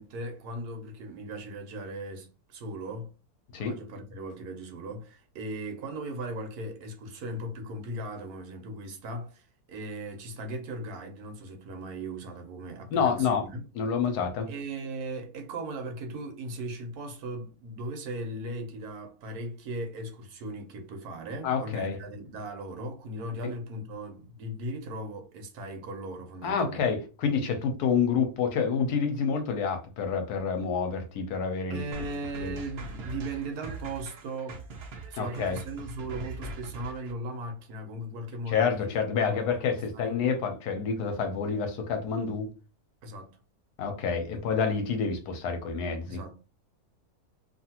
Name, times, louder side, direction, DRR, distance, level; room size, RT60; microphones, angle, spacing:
voice 1, 0.0-3.1 3.6-13.6 14.5-26.8 31.7-34.7 35.1-40.2 43.0-43.4 44.4-44.5 46.1-46.3, right 1 dB, 75° right, 1.3 m, -38 dB
voice 2, 12.9-13.4 13.7-14.5 21.4-22.0 26.4-31.8 32.4-32.6 35.1-35.6 38.5-42.5 43.8-46.2, left 6 dB, 85° left, 1.2 m, -28 dB
sound 1, 31.9-37.1, right 3 dB, 60° right, 0.7 m, -42 dB
2.9 x 2.5 x 2.8 m
omnidirectional pair, 1.7 m